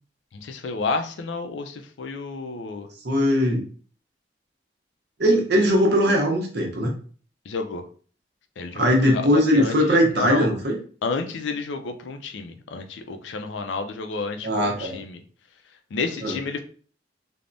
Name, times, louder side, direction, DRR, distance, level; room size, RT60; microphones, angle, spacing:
voice 1, 0.3-2.9 7.5-7.8 8.6-10.5 11.0-15.2 15.9-16.6, left 4 dB, 90° left, 7 dB, 0.4 m, -30 dB
voice 2, 3.0-3.6 5.2-6.9 8.7-10.8 14.4-15.0 16.2-16.3, equal, 65° right, 0 dB, 0.7 m, -20 dB
3.3 x 2.1 x 2.5 m, 0.43 s
head